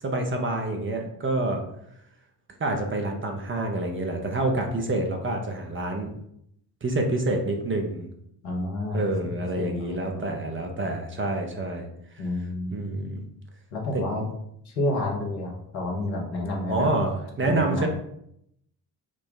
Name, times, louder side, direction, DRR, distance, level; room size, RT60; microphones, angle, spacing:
voice 1, 0.0-1.6 2.6-6.1 6.8-8.1 8.9-11.9 12.7-13.2 13.9-14.2 16.7-17.9, right 2 dB, 25° right, 3 dB, 0.8 m, -27 dB
voice 2, 8.4-9.1 9.6-10.3 12.2-13.2 13.7-14.2 14.6-16.9 17.4-17.9, left 1 dB, 80° left, -1 dB, 1.0 m, -30 dB
4.9 x 2.2 x 3.8 m, 0.73 s
figure-of-eight pair, 50°, 50 cm